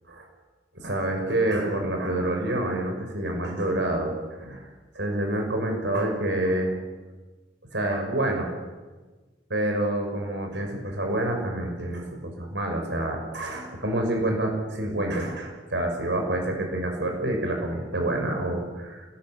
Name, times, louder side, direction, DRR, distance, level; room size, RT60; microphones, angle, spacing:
voice 1, 0.8-4.1 4.4-4.7 4.9-6.8 7.7-8.5 9.5-19.0, right 1 dB, 75° right, 3 dB, 6.3 m, -27 dB
30.0 x 20.0 x 7.9 m, 1.3 s
head